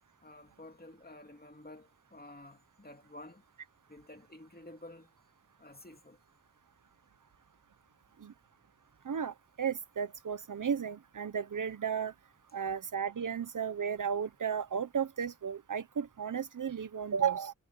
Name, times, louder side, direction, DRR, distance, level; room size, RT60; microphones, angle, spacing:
voice 1, 0.2-3.4 3.9-5.1 5.6-6.2, left 1 dB, 30° left, 2.5 m, -51 dB
voice 2, 9.1-12.1 12.5-17.5, right 7 dB, 80° right, 0.8 m, -34 dB
wide cardioid pair, 60°, 31 cm